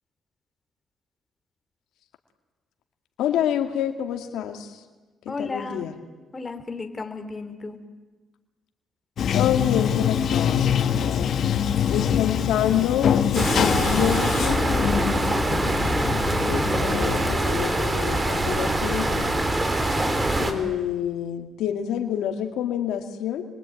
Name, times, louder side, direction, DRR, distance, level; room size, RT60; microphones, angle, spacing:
voice 1, 3.2-4.8 5.3-5.9 9.3-10.6 11.0-11.3 11.9-15.8 16.3-19.4 20.4-23.5, left 10 dB, 85° left, 5 dB, 2.3 m, -28 dB
voice 2, 5.3-5.9 6.3-7.8 20.4-20.6, left 3 dB, 25° left, 6 dB, 3.5 m, -34 dB
Bathtub (filling or washing), 9.2-17.4, left 8 dB, 60° left, 1.3 m, -24 dB
sound 1, 13.3-20.5, right 1 dB, 20° right, 3.5 m, -24 dB
28.0 x 23.0 x 9.3 m, 1.2 s
cardioid pair, 90°, 0 cm